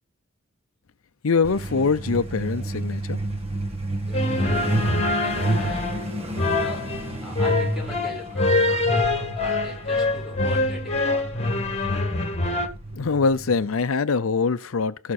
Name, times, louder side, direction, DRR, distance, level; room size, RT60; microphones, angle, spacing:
voice 1, 1.2-3.2 12.9-15.1, left 4 dB, 75° left, 0.6 m, -23 dB
Truck, 1.4-13.8, right 1 dB, 30° right, 1.7 m, -31 dB
sound 1, 4.1-12.7, left 2 dB, 30° left, 1.9 m, -24 dB
voice 2, 4.1-5.9 6.6-6.8 7.2-11.2, left 1 dB, ahead, 5.4 m, -40 dB
17.5 x 5.9 x 4.3 m
head